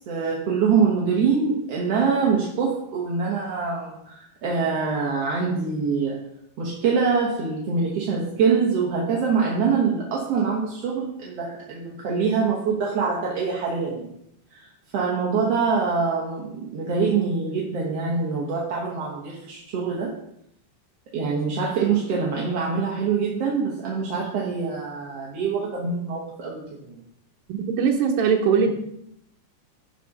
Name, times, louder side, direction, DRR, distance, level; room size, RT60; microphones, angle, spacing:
voice 1, 0.1-6.2 6.6-14.1 14.5-20.1 21.1-27.0, right 5 dB, 60° right, -3 dB, 1.8 m, -24 dB
voice 2, 27.5-28.7, right 6 dB, 90° right, 1 dB, 2.6 m, -21 dB
11.5 x 4.2 x 5.3 m, 0.75 s
omnidirectional pair, 4.1 m